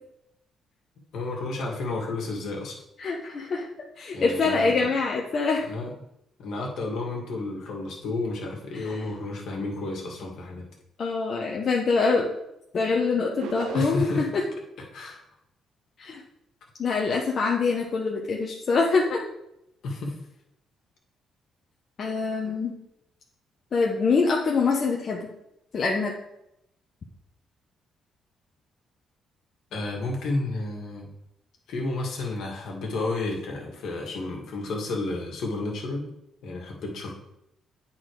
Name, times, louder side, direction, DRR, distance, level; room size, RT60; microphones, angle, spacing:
voice 1, 1.1-2.8 4.1-4.9 5.6-5.9 6.4-10.6 13.7-14.4 14.9-15.2 19.8-20.2 29.7-31.1 31.7-36.1 36.4-37.1, left 2 dB, 75° left, -1 dB, 2.0 m, -31 dB
voice 2, 3.0-3.7 4.0-5.7 8.7-9.0 11.0-12.3 12.7-14.4 16.0-16.2 16.8-19.3 22.0-22.8 23.7-25.2 25.7-26.1, left 4 dB, 50° left, -1 dB, 1.0 m, -25 dB
sound 1, 13.4-14.3, right 6 dB, 90° right, 0.7 m, -36 dB
8.7 x 4.1 x 4.8 m, 0.83 s
cardioid pair, 90°, 0 cm